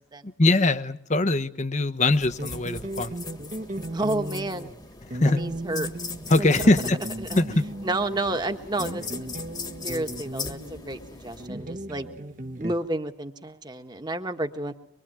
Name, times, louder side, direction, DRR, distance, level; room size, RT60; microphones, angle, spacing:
voice 1, 0.2-3.1 5.1-5.4 6.3-7.0 7.4-7.7, left 2 dB, 35° left, 11 dB, 1.1 m, -22 dB
sound 1, 2.1-11.5, left 4 dB, 20° left, 1.6 m, -39 dB
sound 2, 2.4-12.7, right 1 dB, 40° right, 1.3 m, -36 dB
voice 2, 3.9-4.7 5.2-5.9 6.4-6.5 7.2-7.4 7.8-9.0 9.8-12.1 12.6-14.7, right 2 dB, 20° right, 7 dB, 1.5 m, -30 dB
sound 3, 5.7-11.9, left 1 dB, 85° left, 2.6 m, -52 dB
24.5 x 23.0 x 9.0 m, 0.67 s
head